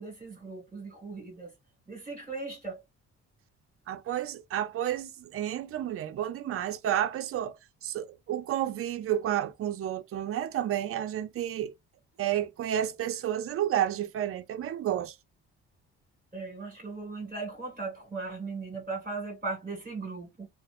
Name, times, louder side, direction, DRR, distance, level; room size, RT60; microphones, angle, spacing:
voice 1, 0.0-1.5 1.9-2.8 16.3-20.5, right 3 dB, 30° right, 1.5 m, -38 dB
voice 2, 3.9-11.7 12.2-15.2, right 11 dB, 50° right, 0.5 m, -31 dB
2.7 x 2.1 x 2.4 m
cardioid pair, 90°, 30 cm